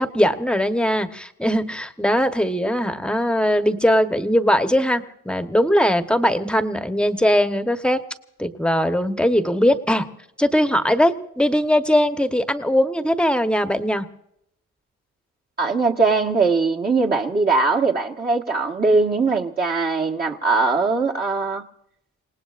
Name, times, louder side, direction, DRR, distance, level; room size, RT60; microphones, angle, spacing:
voice 1, 0.0-8.0 8.4-10.0 10.4-14.1, equal, 5° left, 8 dB, 1.2 m, -20 dB
voice 2, 15.6-21.6, right 4 dB, 30° right, -2 dB, 1.5 m, -20 dB
28.5 x 19.0 x 2.5 m, 0.77 s
cardioid pair, 90°, 30 cm